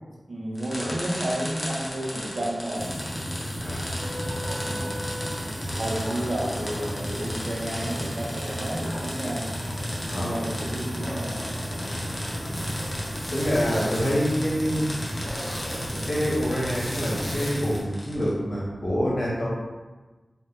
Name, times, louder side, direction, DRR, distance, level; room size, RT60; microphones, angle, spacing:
voice 1, 0.3-3.0 4.6-5.0 5.8-9.5 10.2-11.5 12.4-12.7, right 1 dB, 60° right, -3 dB, 0.5 m, -31 dB
sound 1, 0.6-18.3, left 1 dB, 45° left, 0.6 m, -37 dB
sound 2, 2.8-17.8, equal, 30° left, 0.9 m, -33 dB
voice 2, 3.6-4.4 10.1-10.4 13.1-14.9 15.9-19.5, equal, 75° left, -6 dB, 0.7 m, -27 dB
sound 3, 12.5-17.5, equal, ahead, 0.5 m, -38 dB
2.1 x 2.1 x 3.5 m, 1.2 s
wide cardioid pair, 75°, 0 cm